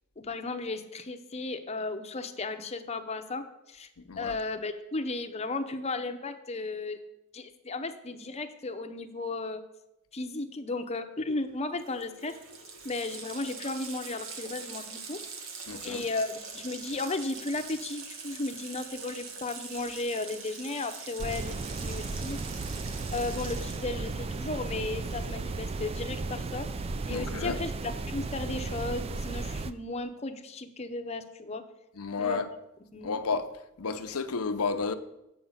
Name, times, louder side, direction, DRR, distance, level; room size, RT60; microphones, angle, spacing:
voice 1, 0.2-3.9 4.2-7.0 7.3-9.6 10.1-12.4 12.8-15.2 15.8-22.5 23.1-26.7 27.1-31.6 32.2-32.6 32.9-33.2, left 3 dB, 30° left, 0.7 m, -35 dB
Water tap faucet, 11.5-11.6 11.8-25.5, right 5 dB, 65° right, 1.2 m, -44 dB
voice 2, 15.7-16.0 27.1-27.6 32.0-32.5 33.0-33.5 33.8-34.9, left 4 dB, 85° left, 0.7 m, -31 dB
sound 1, 21.2-29.7, right 3 dB, 25° right, 0.3 m, -35 dB
7.7 x 5.4 x 7.2 m
head